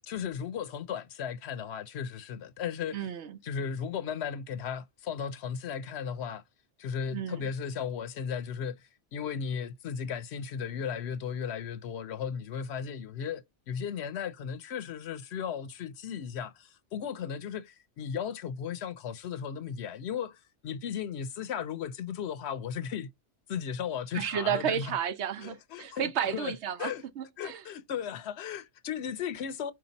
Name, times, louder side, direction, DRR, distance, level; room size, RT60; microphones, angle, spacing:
voice 1, 0.0-3.0 3.4-6.4 6.8-23.1 23.5-25.0 25.4-26.5 26.8-27.1 27.4-29.7, left 7 dB, 70° left, 0.9 m, -36 dB
voice 2, 2.9-3.4 7.1-7.5 24.1-27.6, right 8 dB, 75° right, 1.0 m, -32 dB
4.7 x 2.8 x 3.9 m
omnidirectional pair, 1.2 m